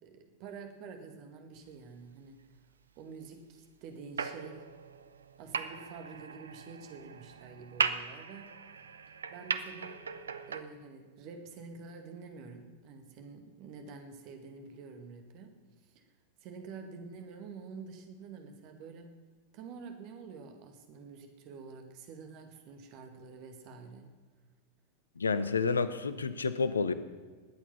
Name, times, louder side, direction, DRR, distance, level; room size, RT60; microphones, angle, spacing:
voice 1, 0.0-2.4 3.0-4.6 5.4-8.6 9.3-10.0 10.5-16.0 16.4-19.1 19.5-24.1, right 5 dB, 45° right, 5 dB, 2.1 m, -48 dB
sound 1, 4.2-10.6, right 5 dB, 70° right, 0.7 m, -38 dB
voice 2, 25.2-26.9, left 4 dB, 75° left, 13 dB, 0.8 m, -29 dB
20.5 x 8.5 x 5.6 m, 1.5 s
figure-of-eight pair, 90°, 0 cm